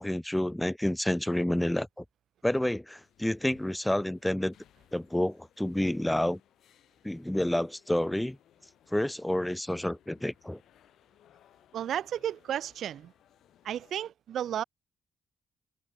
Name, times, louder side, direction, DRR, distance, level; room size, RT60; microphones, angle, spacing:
voice 1, 0.0-2.0 2.4-4.6 4.9-6.4 7.0-8.4 8.9-10.6, left 1 dB, 5° left, 0.7 m, -29 dB
sound 1, 3.0-14.0, left 11 dB, 75° left, 4.8 m, -64 dB
voice 2, 11.7-13.1 13.6-14.6, right 10 dB, 70° right, 0.9 m, -33 dB
cardioid pair, 90°, 0 cm